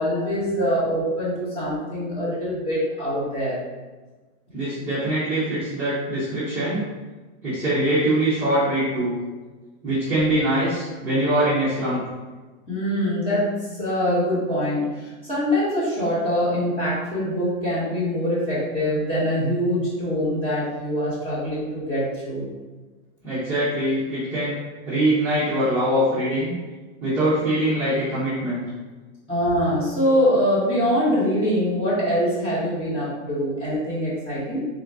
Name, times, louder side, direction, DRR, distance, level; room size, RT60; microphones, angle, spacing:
voice 1, 0.0-3.6 12.7-22.5 29.3-34.7, equal, 15° left, -10 dB, 1.5 m, -24 dB
voice 2, 4.5-6.8 7.4-9.2 9.8-12.0 23.2-24.6 24.9-26.5 27.0-28.6, right 1 dB, 5° right, -14 dB, 0.7 m, -23 dB
3.9 x 2.5 x 3.4 m, 1.3 s
supercardioid pair, 160°, 36 cm